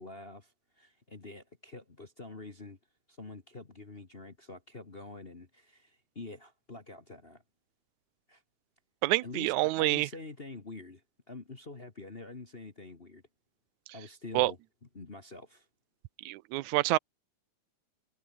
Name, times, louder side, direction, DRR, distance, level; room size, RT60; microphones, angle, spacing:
voice 1, 0.0-2.8 3.1-7.4 8.3-8.4 9.2-11.0 11.3-13.2 13.9-14.6 14.9-15.6, left 3 dB, 30° left, 1.1 m, -46 dB
voice 2, 9.0-10.1 14.3-14.5 16.3-17.0, right 19 dB, 75° right, 2.1 m, -27 dB
omnidirectional pair, 3.5 m